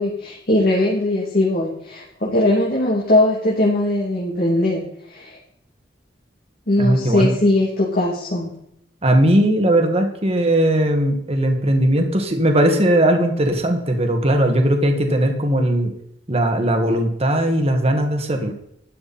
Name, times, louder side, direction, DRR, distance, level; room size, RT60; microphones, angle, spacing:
voice 1, 0.0-5.4 6.7-8.5, left 1 dB, 55° left, -3 dB, 2.8 m, -20 dB
voice 2, 6.8-7.3 9.0-15.9 16.3-18.5, right 1 dB, 35° right, 4 dB, 1.9 m, -18 dB
13.0 x 11.0 x 4.3 m, 0.73 s
head